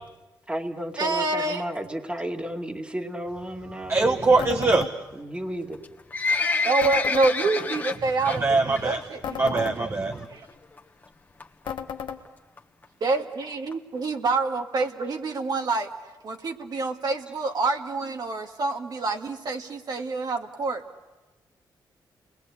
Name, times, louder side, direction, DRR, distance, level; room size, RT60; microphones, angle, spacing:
voice 1, 0.5-4.2 5.1-5.8, right 1 dB, 15° right, 2.3 m, -33 dB
voice 2, 1.0-1.6 6.6-9.9 10.3-10.4 13.0-15.9 16.2-20.8, right 3 dB, 55° right, 2.2 m, -27 dB
voice 3, 3.9-4.9 8.3-9.0 9.4-10.3, right 3 dB, 30° right, 1.3 m, -22 dB
sound 1, 4.4-4.9 6.8-7.3 9.2-9.8 11.7-12.2, left 8 dB, 80° left, 1.6 m, -34 dB
Livestock farm animals working animals, 5.7-8.4 8.7-9.0 9.3-9.4 10.1-10.2 10.5-10.6 10.8-10.9 11.4-11.7 12.2-12.3 12.6-12.7 12.8-12.9 13.1-13.2 13.7-13.8 14.3-14.4 14.8-14.9, left 4 dB, 20° left, 1.6 m, -27 dB
30.0 x 21.0 x 8.5 m
cardioid pair, 95°, 8 cm